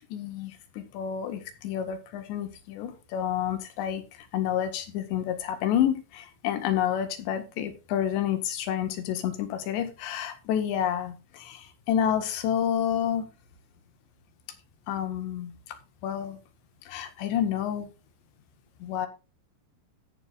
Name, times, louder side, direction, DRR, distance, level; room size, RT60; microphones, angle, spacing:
voice 1, 0.1-4.0 4.3-13.3 14.9-15.5 16.0-16.4 16.9-17.9 18.8-19.1, left 9 dB, 70° left, 9 dB, 3.8 m, -29 dB
14.0 x 11.0 x 2.5 m, 0.31 s
omnidirectional pair, 5.3 m